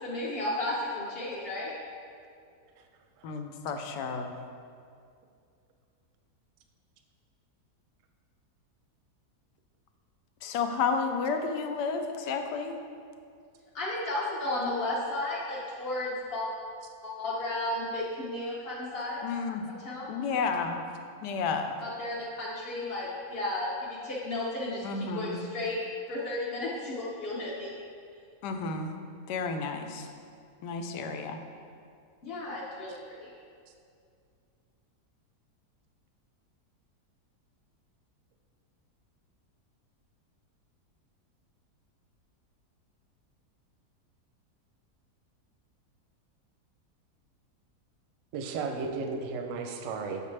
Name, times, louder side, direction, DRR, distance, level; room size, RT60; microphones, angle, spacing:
voice 1, 0.0-1.7 13.7-16.5 17.0-19.2 19.8-20.1 21.8-24.8 25.1-25.8 26.1-27.8 32.2-33.3, left 1 dB, 50° left, -6 dB, 0.7 m, -33 dB
voice 2, 3.2-4.3 10.4-12.8 19.2-19.6 20.1-20.8 21.2-21.7 24.8-25.4 28.4-28.9 29.3-30.1 30.6-31.4, left 5 dB, 85° left, 6 dB, 1.2 m, -31 dB
voice 3, 48.3-50.2, right 4 dB, 65° right, 4 dB, 0.8 m, -34 dB
6.6 x 5.3 x 3.2 m, 2.3 s
omnidirectional pair, 1.7 m